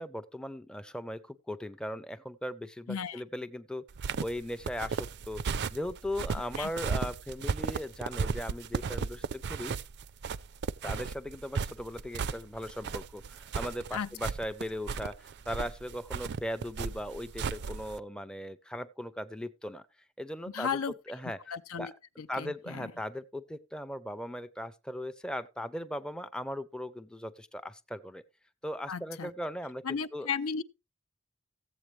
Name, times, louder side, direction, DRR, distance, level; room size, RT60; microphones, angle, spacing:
voice 1, 0.0-3.9 4.2-9.8 10.8-19.9 20.2-20.8 21.1-21.4 21.8-21.9 22.3-28.2 28.6-30.3, equal, 5° left, 0.5 m, -38 dB
voice 2, 2.9-3.2 6.6-6.7 13.9-14.1 20.5-20.9 21.5-21.9 22.2-22.9 28.9-29.3 29.8-30.6, left 6 dB, 75° left, 0.6 m, -34 dB
sound 1, 3.9-18.0, right 5 dB, 55° right, 0.4 m, -35 dB
15.5 x 8.0 x 3.2 m
head